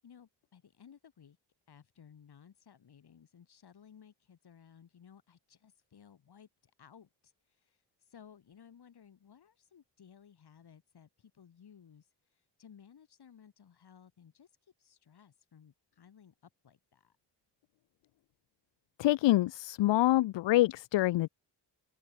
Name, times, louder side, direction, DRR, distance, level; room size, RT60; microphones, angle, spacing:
voice 1, 0.0-1.4 1.7-7.3 7.6-7.8 8.1-12.1 12.3-14.5 14.8-16.3 16.6-17.2, left 8 dB, 65° left, 5.8 m, -58 dB
voice 2, 19.0-21.3, left 16 dB, 90° left, 0.8 m, -26 dB
open air
cardioid pair, 70°, 42 cm